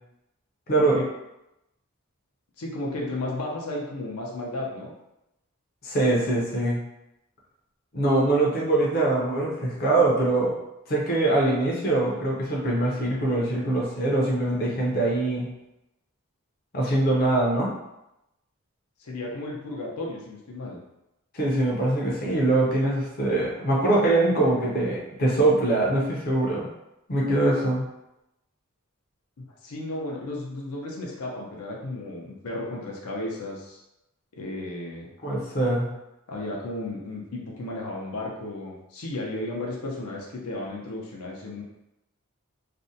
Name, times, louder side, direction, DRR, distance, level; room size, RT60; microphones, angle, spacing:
voice 1, 2.6-4.9 19.0-20.8 29.4-33.8 34.4-35.1 36.3-41.6, left 2 dB, 85° left, -2 dB, 0.6 m, -34 dB
voice 2, 5.8-6.8 7.9-10.5 10.9-15.5 16.7-17.7 21.3-26.7 27.1-27.9 35.2-35.9, right 2 dB, 40° left, -4 dB, 0.5 m, -23 dB
2.5 x 2.1 x 2.6 m, 0.89 s
head